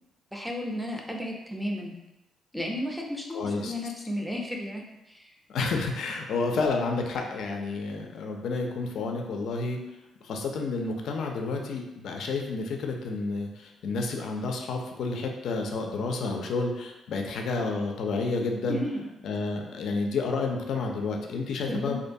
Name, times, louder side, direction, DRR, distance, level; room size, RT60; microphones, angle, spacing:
voice 1, 0.3-2.0 2.5-4.8 5.1-5.4 18.7-19.1 21.7-22.0, left 1 dB, ahead, -1 dB, 0.4 m, -33 dB
voice 2, 3.3-3.7 5.5-9.8 10.2-18.8 19.2-22.0, left 3 dB, 70° left, 2 dB, 0.3 m, -30 dB
2.5 x 2.2 x 2.6 m, 0.97 s
cardioid pair, 90°, 0 cm